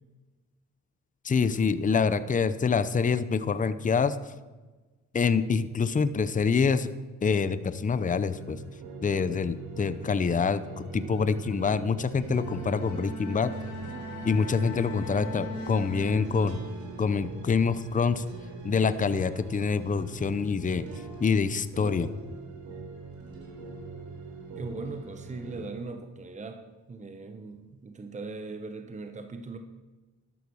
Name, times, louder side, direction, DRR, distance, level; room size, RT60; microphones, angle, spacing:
voice 1, 1.2-4.2 5.1-6.9 7.2-8.6 9.0-13.5 14.2-16.6 17.0-18.2 18.6-20.9 21.2-22.1, left 5 dB, 25° left, 14 dB, 0.8 m, -26 dB
sound 1, 8.0-25.7, right 4 dB, 75° right, 3.8 m, -42 dB
sound 2, 12.1-22.7 23.1-25.5, right 3 dB, 50° right, 4.5 m, -48 dB
Bowed string instrument, 12.2-16.9, left 1 dB, 60° left, 4.4 m, -40 dB
voice 2, 24.6-29.6, right 3 dB, 25° right, 6 dB, 1.1 m, -39 dB
12.5 x 11.0 x 6.3 m, 1.2 s
cardioid pair, 90°, 30 cm